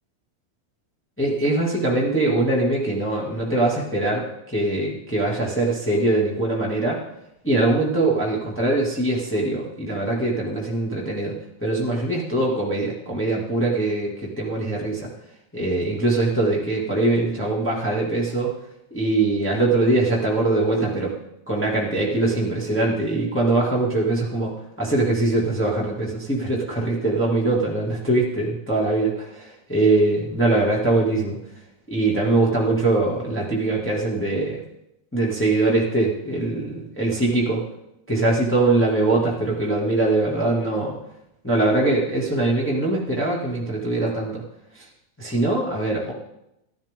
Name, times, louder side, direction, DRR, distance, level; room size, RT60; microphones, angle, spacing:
voice 1, 1.2-7.0 7.4-11.3 11.6-15.1 15.5-18.5 18.9-21.1 21.5-31.4 31.9-34.6 35.1-37.6 38.1-41.0 41.4-44.4 44.7-44.8 45.2-46.1, right 2 dB, 15° left, -4 dB, 0.4 m, -22 dB
15.0 x 12.0 x 3.8 m, 0.83 s
omnidirectional pair, 5.0 m